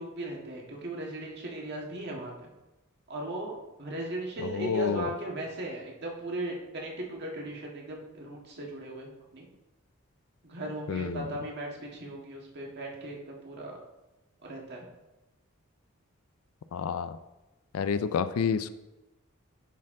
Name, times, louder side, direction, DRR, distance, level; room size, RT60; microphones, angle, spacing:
voice 1, 0.0-2.5 3.1-9.5 10.4-13.8 14.4-14.8, right 1 dB, 55° right, -1 dB, 1.6 m, -37 dB
voice 2, 4.5-5.1 10.9-11.2 16.7-17.2 17.7-18.7, left 6 dB, 85° left, 13 dB, 0.4 m, -29 dB
10.0 x 4.3 x 3.7 m, 1.0 s
head